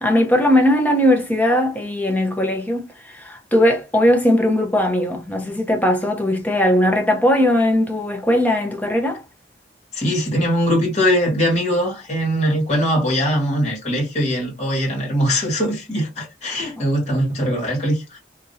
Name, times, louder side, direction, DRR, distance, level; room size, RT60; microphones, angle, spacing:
voice 1, 0.0-9.2, left 1 dB, 10° left, 0.7 m, -18 dB
voice 2, 9.9-18.2, equal, 40° left, 1.8 m, -21 dB
3.5 x 2.8 x 2.7 m
head